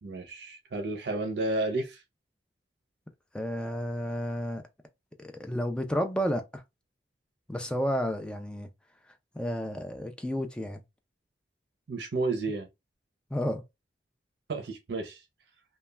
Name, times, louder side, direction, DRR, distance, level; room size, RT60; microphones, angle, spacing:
voice 1, 0.0-2.0 11.9-12.7 14.5-15.2, right 2 dB, 70° right, 0.5 m, -31 dB
voice 2, 3.3-4.6 5.2-6.6 7.5-8.7 9.3-10.8 13.3-13.6, equal, 5° left, 0.3 m, -31 dB
2.3 x 2.1 x 3.1 m
head